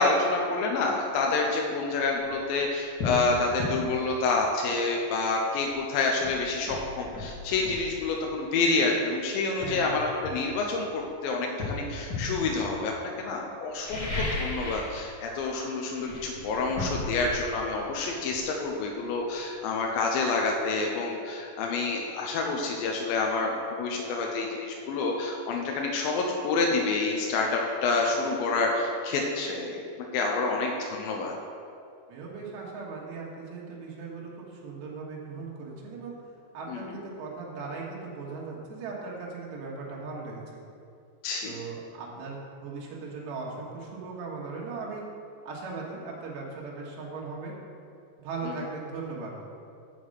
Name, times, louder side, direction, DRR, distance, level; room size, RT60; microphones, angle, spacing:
voice 1, 0.0-29.8 30.1-31.3 36.7-36.8 41.2-41.5 48.5-48.6, left 3 dB, 80° left, 0 dB, 2.1 m, -28 dB
sound 1, 2.2-2.4 3.0-3.2 3.6-3.8 5.7-5.8 6.2-7.9 8.9-9.1 9.6-11.0 11.6-12.4 13.7-15.0 15.2-15.6 15.9-19.5 19.8-19.9, left 3 dB, 40° left, 1.8 m, -35 dB
voice 2, 9.6-10.1 32.1-36.2 36.5-40.4 41.4-45.1 45.5-47.6 48.2-49.4, right 4 dB, 80° right, -3 dB, 3.6 m, -38 dB
7.1 x 6.3 x 7.7 m, 2.5 s
omnidirectional pair, 4.9 m